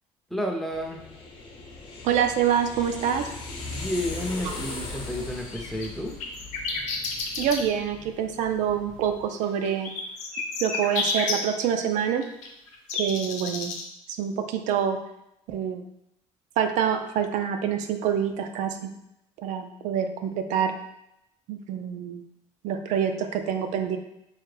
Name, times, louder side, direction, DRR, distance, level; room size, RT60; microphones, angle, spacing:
voice 1, 0.3-1.0 3.7-6.1, equal, ahead, 1 dB, 0.5 m, -31 dB
sound 1, 0.7-9.3, left 3 dB, 45° left, 0.8 m, -39 dB
voice 2, 2.0-3.3 4.5-4.6 7.4-9.9 10.6-12.2 12.9-13.7 14.1-15.0 15.5-15.8 16.6-18.9 19.4-20.7 21.5-22.2 22.6-24.0, right 8 dB, 80° right, 6 dB, 0.4 m, -26 dB
sound 2, 5.1-7.6 9.6-11.3 12.2-13.8, left 4 dB, 80° left, 0.7 m, -30 dB
4.7 x 2.1 x 3.2 m, 0.81 s
cardioid pair, 125°, 13 cm